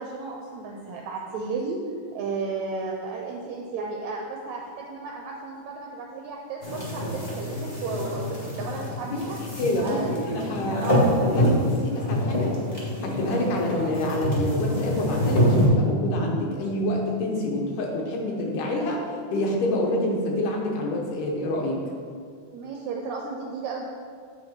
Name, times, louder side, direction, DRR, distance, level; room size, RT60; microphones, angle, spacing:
voice 1, 0.0-1.8 2.1-9.4 9.8-11.2 22.5-23.8, right 4 dB, 80° right, 0 dB, 1.8 m, -34 dB
sound 1, 6.6-15.7, equal, 25° left, 1.5 m, -26 dB
voice 2, 9.4-10.0 10.2-11.1 11.3-12.5 13.0-19.0 19.3-21.8, left 1 dB, 90° left, 0 dB, 2.6 m, -27 dB
8.3 x 4.8 x 4.3 m, 2.1 s
omnidirectional pair, 3.6 m